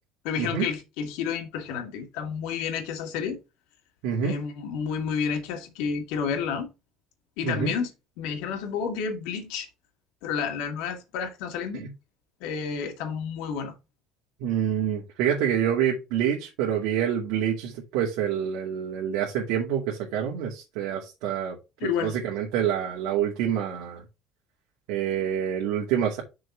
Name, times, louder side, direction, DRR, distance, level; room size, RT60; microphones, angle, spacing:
voice 1, 0.2-3.4 4.2-6.7 7.4-7.9 8.2-9.7 10.2-11.8 12.4-13.7 21.8-22.1, left 6 dB, 85° left, 2.4 m, -30 dB
voice 2, 4.0-4.3 7.4-7.7 11.7-11.9 14.4-21.6 21.8-24.0 24.9-26.2, right 9 dB, 85° right, 2.3 m, -27 dB
6.2 x 4.0 x 6.2 m
cardioid pair, 170°, 0 cm